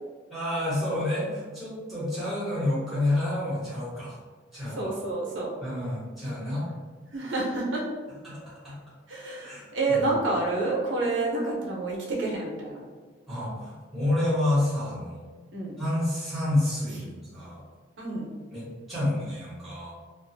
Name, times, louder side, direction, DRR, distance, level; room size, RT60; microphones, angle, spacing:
voice 1, 0.3-4.1 4.5-4.9 5.6-6.7 8.2-8.7 9.4-9.6 10.0-10.1 13.3-15.2 15.8-17.6 18.5-19.9, left 1 dB, ahead, -10 dB, 1.2 m, -29 dB
voice 2, 4.7-5.5 7.1-7.8 9.1-12.9 15.5-15.8 18.0-18.4, right 2 dB, 90° right, -3 dB, 0.7 m, -29 dB
2.5 x 2.4 x 2.6 m, 1.4 s
head